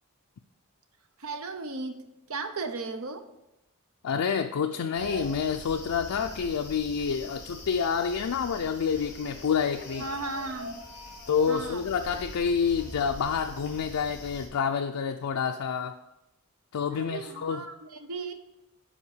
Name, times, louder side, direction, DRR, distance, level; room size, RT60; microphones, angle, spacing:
voice 1, 1.2-2.0 2.3-3.3 10.0-10.8 11.5-11.8 16.9-18.3, right 3 dB, 70° right, 8 dB, 0.8 m, -36 dB
voice 2, 4.0-10.1 11.3-16.0 16.7-17.7, left 6 dB, 90° left, 5 dB, 0.4 m, -28 dB
sound 1, 4.9-14.5, left 1 dB, 55° left, 2.3 m, -43 dB
7.2 x 4.6 x 6.6 m, 0.92 s
head